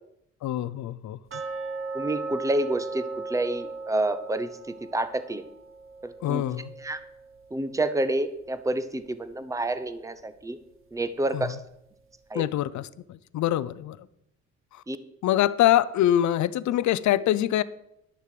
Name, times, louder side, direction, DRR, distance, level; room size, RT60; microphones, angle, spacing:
voice 1, 0.4-1.2 6.2-6.7 11.3-11.5 12.3-14.0 14.7-14.8 15.2-17.6, left 12 dB, 70° left, 17 dB, 0.6 m, -24 dB
sound 1, 1.3-8.2 8.4-8.5 9.1-9.2 9.7-9.8, right 4 dB, 45° right, 1.2 m, -38 dB
voice 2, 1.9-5.4 6.0-6.4 6.8-7.0 7.5-10.6 10.9-11.6 12.3-12.4 14.9-15.0, right 1 dB, 10° right, 12 dB, 0.9 m, -29 dB
11.0 x 6.8 x 6.7 m, 0.81 s
cardioid pair, 90°, 30 cm